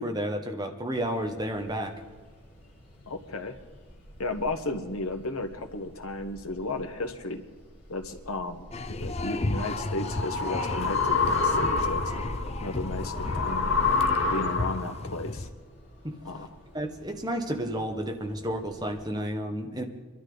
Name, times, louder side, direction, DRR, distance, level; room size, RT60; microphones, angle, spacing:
voice 1, 0.0-1.9 16.0-16.2 16.7-19.8, equal, 20° right, 3 dB, 1.2 m, -31 dB
sound 1, 0.9-19.0, equal, 45° left, 4.7 m, -47 dB
voice 2, 3.1-3.6 4.2-7.4 7.9-8.7 9.0-12.2 12.6-13.8 14.3-15.5 16.2-16.5, left 2 dB, 80° left, 8 dB, 1.2 m, -34 dB
sound 2, 8.7-15.5, left 2 dB, 30° left, 0.5 m, -34 dB
sound 3, 9.3-15.1, left 4 dB, 60° left, 1.2 m, -28 dB
23.5 x 12.5 x 3.9 m, 1.4 s
head